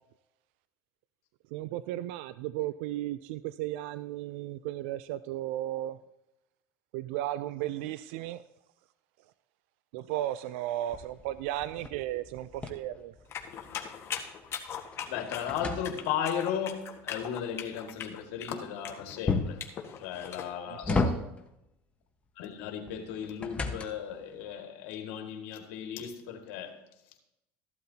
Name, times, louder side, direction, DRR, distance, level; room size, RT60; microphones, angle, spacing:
voice 1, 1.5-6.0 6.9-8.4 9.9-13.1 20.7-21.3, right 14 dB, 80° right, 0.4 m, -35 dB
sound 1, 10.9-13.8 14.2-16.4 19.3-19.7 20.4-21.6 22.9-24.2, left 3 dB, 20° left, 1.2 m, -33 dB
sound 2, 13.3-20.5, left 8 dB, 45° left, 1.5 m, -40 dB
voice 2, 15.1-19.6 20.0-21.0 22.4-26.8, left 8 dB, 80° left, 2.0 m, -35 dB
15.0 x 12.0 x 2.8 m
supercardioid pair, 105°, 6 cm